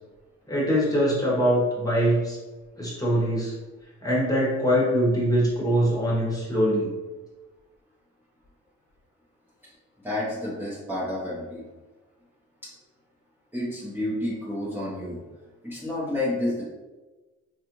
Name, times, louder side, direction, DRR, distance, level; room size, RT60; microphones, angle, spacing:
voice 1, 0.5-2.4 2.8-3.5 4.0-6.9, equal, 10° left, -5 dB, 1.2 m, -23 dB
voice 2, 10.0-11.6 13.5-15.2 15.6-16.6, left 1 dB, 5° right, -10 dB, 1.0 m, -30 dB
3.3 x 2.5 x 3.0 m, 1.2 s
cardioid pair, 90°, 30 cm